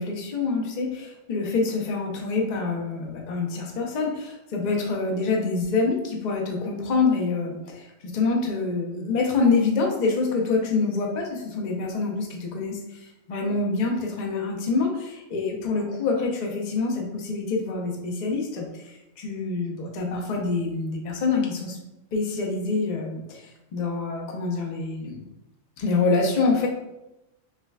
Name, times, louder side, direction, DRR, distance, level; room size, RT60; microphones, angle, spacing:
voice 1, 0.0-21.8 22.1-25.2 25.8-26.7, left 4 dB, 45° left, 0 dB, 0.6 m, -26 dB
5.7 x 2.2 x 2.3 m, 0.93 s
omnidirectional pair, 1.3 m